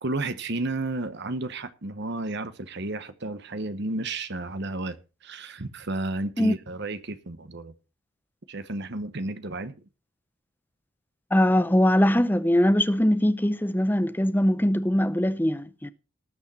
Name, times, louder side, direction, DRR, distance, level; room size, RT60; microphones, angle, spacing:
voice 1, 0.0-5.0 5.2-7.7 8.5-9.8, right 2 dB, 50° right, 1.0 m, -32 dB
voice 2, 11.3-15.9, equal, 10° left, 0.6 m, -22 dB
19.0 x 6.4 x 4.3 m
head